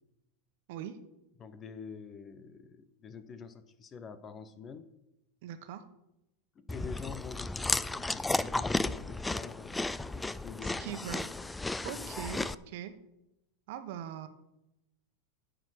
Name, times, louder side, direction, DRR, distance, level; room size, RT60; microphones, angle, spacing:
voice 1, 1.4-4.9 6.5-11.0 11.9-12.4, left 6 dB, 30° left, 12 dB, 1.0 m, -46 dB
voice 2, 5.4-5.8 10.6-11.3 11.8-12.9 13.7-14.3, right 10 dB, 65° right, 9 dB, 1.4 m, -41 dB
Chewing mastication, 6.7-12.5, left 2 dB, 10° left, 0.4 m, -34 dB
10.0 x 7.8 x 6.5 m, 0.88 s
supercardioid pair, 120°, 0 cm